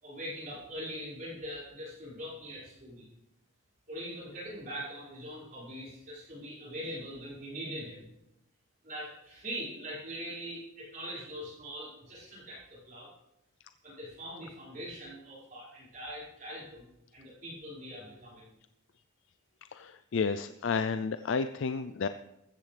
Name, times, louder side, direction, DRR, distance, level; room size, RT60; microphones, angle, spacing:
voice 1, 0.0-3.1 3.9-8.1 8.8-13.1 13.8-16.9 17.1-18.5, equal, 40° right, -9 dB, 5.5 m, -42 dB
voice 2, 19.7-22.1, left 5 dB, 65° left, 12 dB, 0.4 m, -31 dB
15.0 x 14.0 x 3.4 m, 0.89 s
head